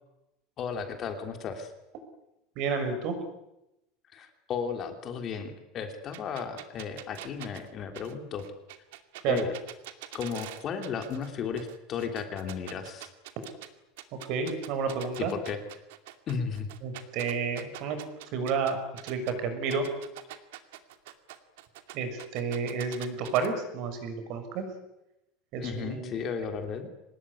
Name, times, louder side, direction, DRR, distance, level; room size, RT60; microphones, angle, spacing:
voice 1, 0.6-1.7 4.1-8.4 9.3-9.5 10.1-13.1 15.3-15.6 16.3-16.7 25.6-26.9, left 6 dB, 30° left, 5 dB, 3.1 m, -34 dB
voice 2, 2.5-3.2 9.2-9.4 14.1-15.3 16.8-18.0 18.3-19.9 21.9-24.6 25.5-26.1, right 5 dB, 45° right, 8 dB, 6.4 m, -30 dB
sound 1, 6.1-11.3 11.6-13.7 14.0-19.3 19.7-23.5, right 15 dB, 75° right, 2.5 m, -44 dB
25.0 x 20.0 x 10.0 m, 0.90 s
supercardioid pair, 175°, 0 cm